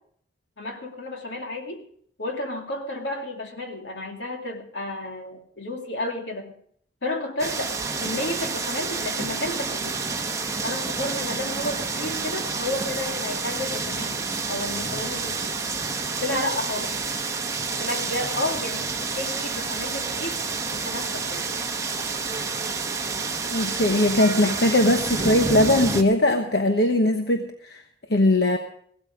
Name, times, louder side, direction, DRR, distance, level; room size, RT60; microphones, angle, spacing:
voice 1, 0.6-1.8 2.2-6.5 7.0-10.0 10.6-15.5 16.2-17.0 17.8-20.4 20.7-21.5, left 1 dB, 80° left, 3 dB, 2.6 m, -32 dB
sound 1, 7.4-26.0, right 4 dB, 15° right, 1.2 m, -29 dB
voice 2, 23.5-27.8 28.1-28.6, left 1 dB, 60° left, 5 dB, 1.1 m, -20 dB
17.0 x 13.0 x 5.0 m, 0.62 s
head